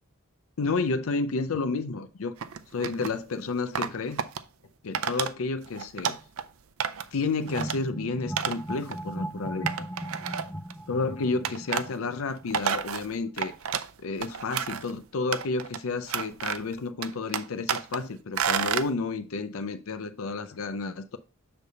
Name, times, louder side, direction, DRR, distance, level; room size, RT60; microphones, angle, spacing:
voice 1, 0.6-2.3 2.7-4.2 4.8-6.2 7.1-9.9 10.9-13.5 14.0-21.2, left 3 dB, 85° left, 0.5 m, -31 dB
sound 1, 2.4-3.2 3.7-4.4 4.9-5.3 5.6-6.4 6.8-7.1 7.5-7.8 8.4-8.6 8.9-9.0 9.7-10.7 11.4-11.9 12.3-13.9 14.2-14.9 15.3-15.8 16.1-16.7 17.0-18.0 18.4-18.9, right 8 dB, 90° right, 0.5 m, -30 dB
sound 2, 7.4-12.7, right 1 dB, 5° left, 0.4 m, -38 dB
6.7 x 3.4 x 5.2 m
head